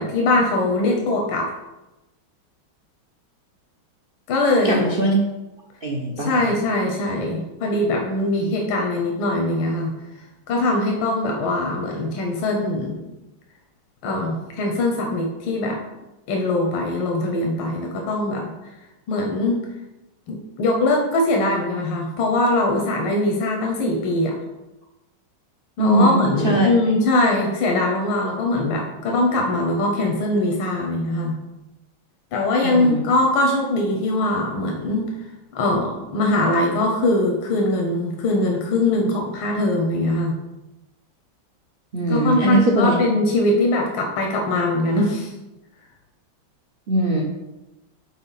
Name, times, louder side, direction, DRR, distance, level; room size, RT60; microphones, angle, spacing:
voice 1, 0.0-1.5 4.3-4.8 6.2-9.9 10.5-13.0 14.0-15.8 16.3-18.5 19.1-19.6 20.3-24.4 25.8-31.4 32.3-35.1 35.5-40.3 42.1-45.3, left 2 dB, 85° left, 0 dB, 1.8 m, -21 dB
voice 2, 4.6-5.2 5.8-6.5 8.4-8.5 25.8-26.7 32.6-33.1 41.9-43.0 46.9-47.2, right 1 dB, 75° right, -1 dB, 0.5 m, -20 dB
5.4 x 4.3 x 5.6 m, 1.0 s
omnidirectional pair, 2.2 m